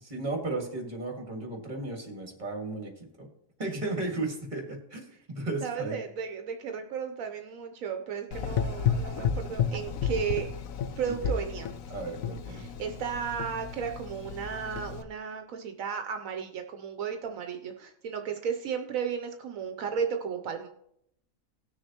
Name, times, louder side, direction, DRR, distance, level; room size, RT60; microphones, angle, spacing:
voice 1, 0.1-3.3 3.6-6.0 11.0-11.3 11.9-12.7, right 2 dB, 35° right, 2 dB, 2.1 m, -35 dB
voice 2, 5.6-10.5 11.0-11.7 12.5-20.7, right 7 dB, 80° right, 5 dB, 1.1 m, -34 dB
Gurgling / Engine, 8.3-15.0, left 7 dB, 80° left, 1.1 m, -32 dB
19.0 x 6.5 x 2.9 m, 0.75 s
omnidirectional pair, 1.4 m